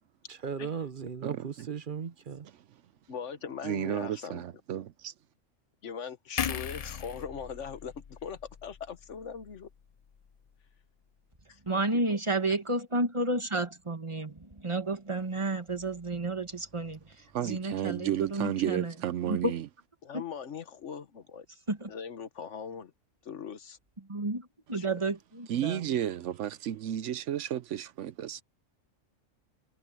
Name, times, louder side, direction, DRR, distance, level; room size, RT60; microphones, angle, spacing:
voice 1, 0.3-2.5, right 6 dB, 45° right, 1.1 m, -37 dB
voice 2, 1.2-1.7 3.6-5.1 17.3-19.7 25.5-28.4, right 11 dB, 70° right, 0.9 m, -32 dB
voice 3, 3.1-4.4 5.8-9.7 11.5-11.6 12.1-12.2 20.0-21.5 21.9-22.9 23.2-23.8 24.7-24.9, left 7 dB, 65° left, 1.4 m, -40 dB
sound 1, 6.4-9.7 10.1-10.3, left 8 dB, 50° left, 0.4 m, -38 dB
voice 4, 11.7-17.0 17.4-18.9 19.3-19.6 20.1-20.2 21.7-21.9 24.1-25.9, right 2 dB, 25° right, 1.7 m, -31 dB
omnidirectional pair, 1.3 m